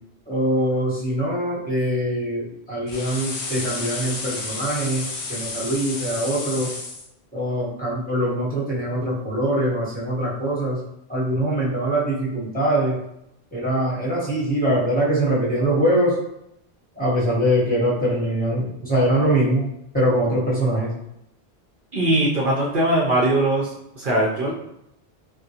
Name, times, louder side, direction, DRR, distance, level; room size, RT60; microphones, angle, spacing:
voice 1, 0.3-6.7 7.3-10.8 11.1-13.0 13.5-16.2 17.0-19.7 19.9-20.9, right 1 dB, 10° left, -9 dB, 0.9 m, -23 dB
sound 1, 2.9-7.1, left 3 dB, 60° left, 0.8 m, -31 dB
voice 2, 21.9-23.7 23.9-24.5, right 1 dB, 60° right, -4 dB, 0.7 m, -20 dB
3.6 x 2.1 x 2.7 m, 0.79 s
omnidirectional pair, 1.1 m